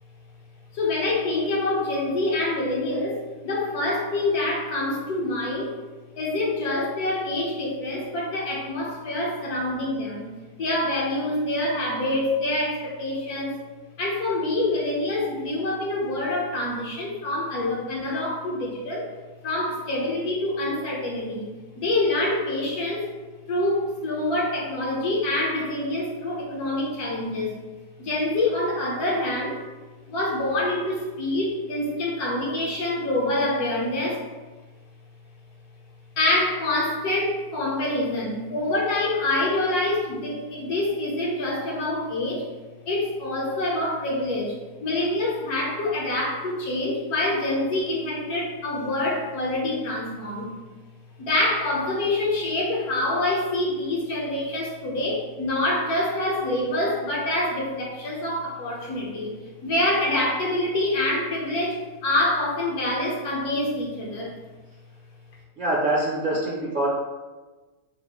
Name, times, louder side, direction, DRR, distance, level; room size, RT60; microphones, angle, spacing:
voice 1, 0.7-5.7 6.2-10.3 10.6-13.6 14.0-19.1 19.4-23.1 23.5-27.5 28.0-29.6 30.1-34.2 36.2-42.4 42.9-44.5 44.8-50.5 51.2-64.3, left 1 dB, 75° left, -3 dB, 1.5 m, -26 dB
voice 2, 65.6-66.9, right 1 dB, 45° right, -5 dB, 0.7 m, -24 dB
4.2 x 2.5 x 4.2 m, 1.2 s
omnidirectional pair, 1.6 m